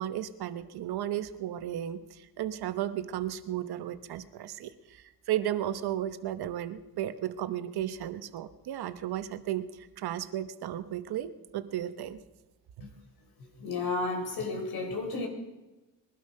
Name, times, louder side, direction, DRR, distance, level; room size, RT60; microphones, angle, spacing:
voice 1, 0.0-12.2, right 11 dB, 75° right, 11 dB, 1.1 m, -34 dB
voice 2, 13.4-15.3, left 3 dB, 70° left, 2 dB, 4.1 m, -33 dB
21.5 x 12.0 x 5.4 m, 1.1 s
cardioid pair, 85°, 38 cm